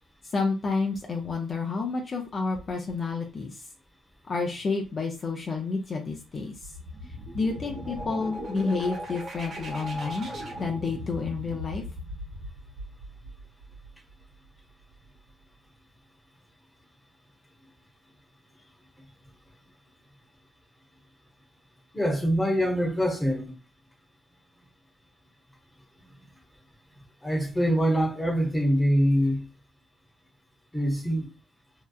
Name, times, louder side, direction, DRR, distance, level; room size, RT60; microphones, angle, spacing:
voice 1, 0.3-3.7 4.3-6.7 7.3-10.3 10.6-11.8, left 4 dB, 40° left, 0.5 m, -30 dB
sound 1, 6.5-14.1, equal, 50° right, 1.1 m, -38 dB
voice 2, 21.9-23.5 27.2-29.4 30.7-31.3, equal, 5° left, 0.9 m, -24 dB
2.7 x 2.2 x 2.3 m
cardioid pair, 90°, 0 cm